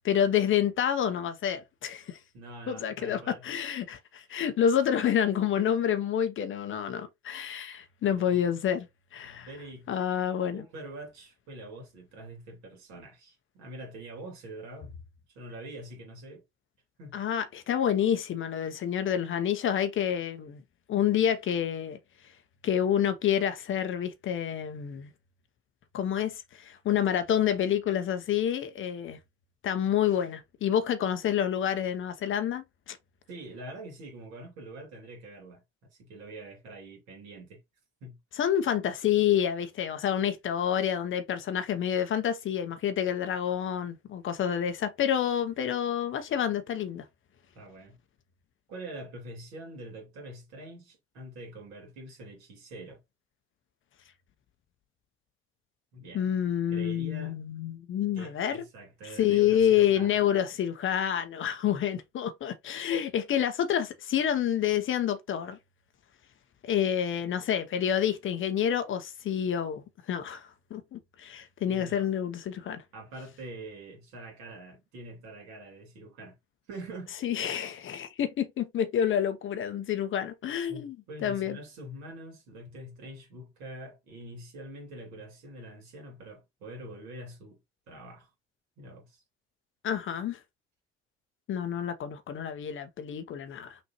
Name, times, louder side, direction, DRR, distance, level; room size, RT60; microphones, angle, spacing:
voice 1, 0.0-2.2 2.7-8.9 9.1-9.5 9.9-10.6 17.1-20.6 20.9-22.0 22.6-25.1 25.9-29.2 29.6-33.0 38.3-47.0 56.1-58.6 59.0-65.6 66.6-72.8 77.2-81.0 81.2-81.6 89.8-90.4 91.5-93.8, left 9 dB, 40° left, 0.8 m, -28 dB
voice 2, 2.3-3.4 4.3-4.4 8.1-8.4 9.2-9.9 10.5-15.0 15.3-16.4 17.0-17.2 33.3-35.6 35.9-37.6 38.0-38.2 47.5-48.0 48.7-53.0 55.9-56.2 56.7-57.4 58.1-60.2 71.7-72.1 72.9-76.3 76.7-77.1 80.7-87.6 87.9-88.3 88.8-89.2, right 1 dB, 60° right, 2.6 m, -45 dB
5.9 x 2.6 x 2.9 m
figure-of-eight pair, 50°, 31 cm